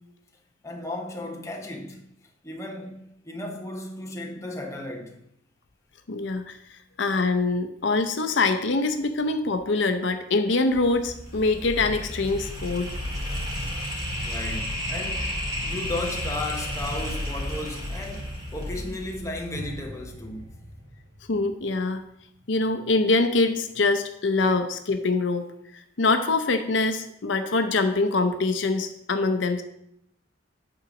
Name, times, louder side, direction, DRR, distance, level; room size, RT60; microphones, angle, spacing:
voice 1, 0.6-2.0 2.4-5.2 14.2-20.6, left 2 dB, 15° left, 0.9 m, -35 dB
voice 2, 6.1-12.9 21.3-22.0 22.5-25.4 25.7-29.6, left 3 dB, 75° left, 0.6 m, -24 dB
sound 1, 10.7-19.8, left 1 dB, 20° right, 2.1 m, -32 dB
sound 2, 19.5-22.7 23.0-23.2, equal, 55° right, 1.8 m, -44 dB
8.8 x 3.9 x 5.9 m
head